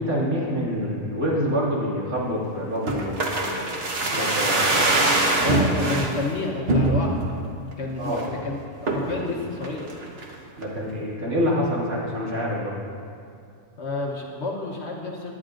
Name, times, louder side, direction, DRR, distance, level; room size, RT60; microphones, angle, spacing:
voice 1, 0.0-4.7 8.0-8.3 10.6-12.8, equal, 65° right, -6 dB, 2.8 m, -27 dB
sound 1, 2.9-6.1 6.7-7.3 7.7-7.8 8.1-8.4 8.9-9.2 9.6-10.3 10.6-10.7, right 2 dB, 45° right, 1.3 m, -23 dB
voice 2, 5.4-7.2 7.8-9.9 13.8-15.4, left 3 dB, 50° left, -1 dB, 1.2 m, -30 dB
20.0 x 9.9 x 2.6 m, 2.5 s
omnidirectional pair, 1.6 m